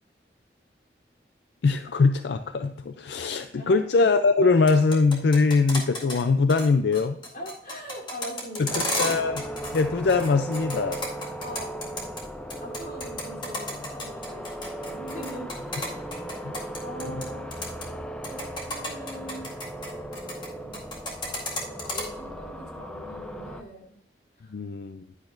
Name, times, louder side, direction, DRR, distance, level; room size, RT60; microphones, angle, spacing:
voice 1, 1.6-7.2 8.6-9.4 9.7-11.0 16.4-16.5 24.5-25.0, left 4 dB, 80° left, 9 dB, 0.4 m, -22 dB
sound 1, 4.5-6.2 6.5-6.7 6.9-9.8 10.1-12.2 12.5-17.2 17.5-17.8 18.2-20.5 20.7-22.0, left 1 dB, 25° left, 2.0 m, -32 dB
voice 2, 7.3-9.1 11.4-11.8 12.6-15.5 15.9-16.0 16.8-17.5 18.3-19.5 20.5-20.8 21.7-23.9 24.4-24.5, equal, 50° left, -1 dB, 3.0 m, -41 dB
sound 2, 8.7-23.6, right 1 dB, 5° left, 0.6 m, -37 dB
11.0 x 10.5 x 2.6 m, 0.75 s
head